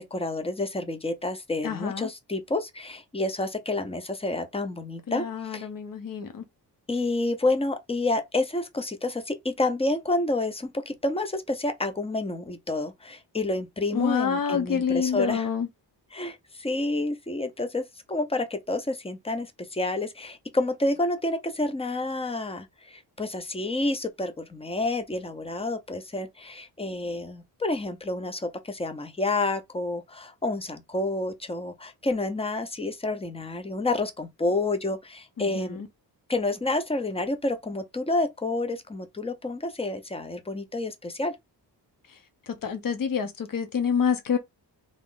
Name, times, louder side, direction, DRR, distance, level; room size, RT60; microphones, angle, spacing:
voice 1, 0.1-5.7 6.9-15.5 16.1-35.8 36.3-41.4, left 2 dB, 15° left, 0.6 m, -29 dB
voice 2, 1.6-2.1 5.1-6.4 13.9-15.7 35.4-35.9 42.6-44.4, left 6 dB, 50° left, 1.0 m, -27 dB
3.7 x 3.0 x 3.7 m
wide cardioid pair, 155°, 42 cm